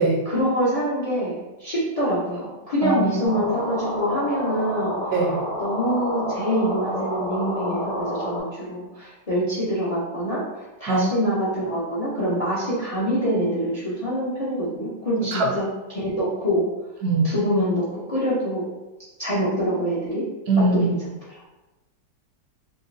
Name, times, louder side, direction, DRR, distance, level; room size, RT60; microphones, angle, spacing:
voice 1, 0.2-1.3 1.6-5.0 5.6-16.6 17.2-18.6 19.2-20.3 20.6-21.4, equal, 60° left, -8 dB, 0.3 m, -25 dB
voice 2, 2.8-3.2 5.1-5.4 10.9-11.1 15.3-15.5 17.0-17.3 20.5-20.9, right 3 dB, 70° right, 1 dB, 1.0 m, -21 dB
sound 1, 3.2-8.4, equal, 30° right, 0.5 m, -29 dB
5.0 x 2.0 x 2.5 m, 1.1 s
omnidirectional pair, 1.8 m